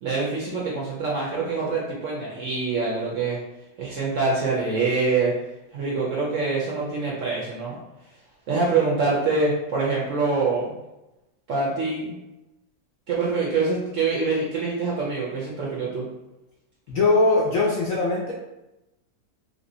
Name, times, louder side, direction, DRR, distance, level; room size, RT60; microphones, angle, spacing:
voice 1, 0.0-3.4 3.8-5.3 5.7-7.8 8.5-10.7 11.5-12.2 13.1-16.0, right 4 dB, 65° right, -5 dB, 0.8 m, -25 dB
voice 2, 16.9-18.3, left 3 dB, 65° left, -4 dB, 0.8 m, -21 dB
3.2 x 2.8 x 2.6 m, 0.96 s
omnidirectional pair, 1.9 m